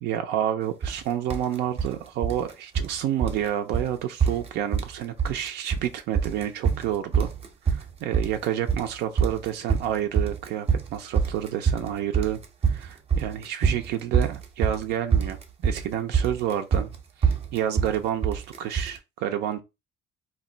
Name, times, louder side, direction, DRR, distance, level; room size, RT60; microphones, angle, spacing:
voice 1, 0.0-7.3 7.6-19.6, right 11 dB, 80° right, 0.5 m, -29 dB
sound 1, 0.8-1.0 1.3-1.9 2.2-3.0 3.2-3.5 3.7-3.9 4.2-4.9 5.2-5.9 6.2-19.0, right 6 dB, 35° right, 0.6 m, -25 dB
2.3 x 2.1 x 3.7 m
cardioid pair, 110°, 17 cm